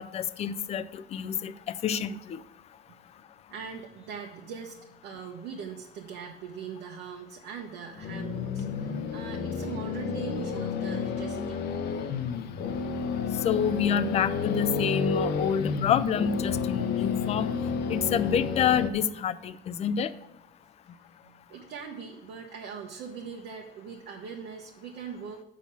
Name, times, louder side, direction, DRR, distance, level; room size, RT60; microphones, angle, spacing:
voice 1, 0.0-2.4 13.4-17.5 17.9-20.1, left 8 dB, 35° left, 13 dB, 0.4 m, -28 dB
voice 2, 3.5-11.9 20.9-25.4, right 6 dB, 65° right, 0 dB, 1.2 m, -41 dB
sound 1, 8.0-18.9, left 5 dB, 60° left, 0.8 m, -31 dB
8.6 x 6.2 x 7.1 m, 1.0 s
cardioid pair, 165°, 20 cm